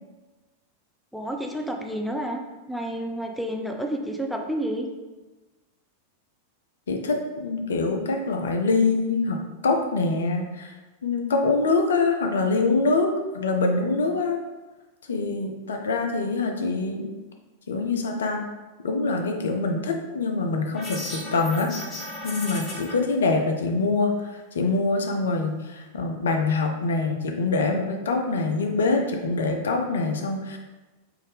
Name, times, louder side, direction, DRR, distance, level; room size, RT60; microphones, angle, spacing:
voice 1, 1.1-2.4 2.7-4.9, right 1 dB, ahead, 2 dB, 0.4 m, -30 dB
voice 2, 6.9-10.7 11.0-14.4 15.1-17.1 17.7-18.5 18.8-30.6, left 3 dB, 65° left, 3 dB, 0.4 m, -25 dB
sound 1, 20.7-22.9, left 1 dB, 35° left, 0.8 m, -35 dB
3.8 x 2.5 x 3.4 m, 1.2 s
figure-of-eight pair, 90°, 0 cm